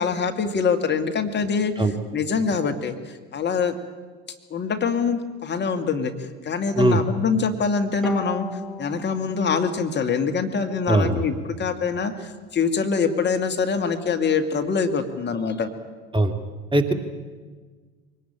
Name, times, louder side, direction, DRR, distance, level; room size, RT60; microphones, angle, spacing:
voice 1, 0.0-3.8 4.5-8.5 8.8-15.7, left 5 dB, 35° left, 6 dB, 2.1 m, -24 dB
Bowed string instrument, 8.0-11.4, left 1 dB, ahead, 3.5 m, -38 dB
voice 2, 10.9-11.2 16.1-16.3 16.7-16.9, right 1 dB, 15° right, 7 dB, 2.2 m, -19 dB
23.0 x 19.0 x 8.9 m, 1.4 s
hypercardioid pair, 65°, 30 cm